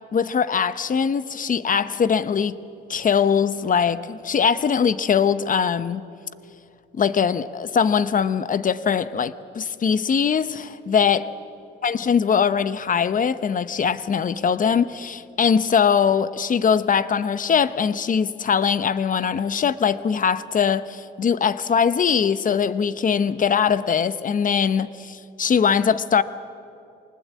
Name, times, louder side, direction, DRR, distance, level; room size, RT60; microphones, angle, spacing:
voice 1, 0.1-2.6 2.9-6.0 7.0-11.3 11.8-26.2, left 7 dB, 40° left, 14 dB, 0.9 m, -21 dB
24.0 x 19.5 x 8.4 m, 2.6 s
cardioid pair, 90°, 20 cm